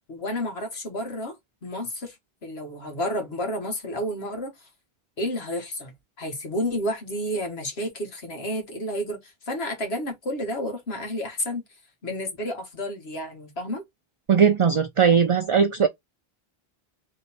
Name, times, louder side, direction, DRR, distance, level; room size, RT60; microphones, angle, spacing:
voice 1, 0.1-1.4 1.6-2.2 2.4-4.5 5.2-11.6 12.0-13.8, equal, 90° left, 1.7 m, -31 dB
voice 2, 14.3-15.9, right 6 dB, 45° right, 0.4 m, -19 dB
3.8 x 3.2 x 4.2 m
omnidirectional pair, 1.0 m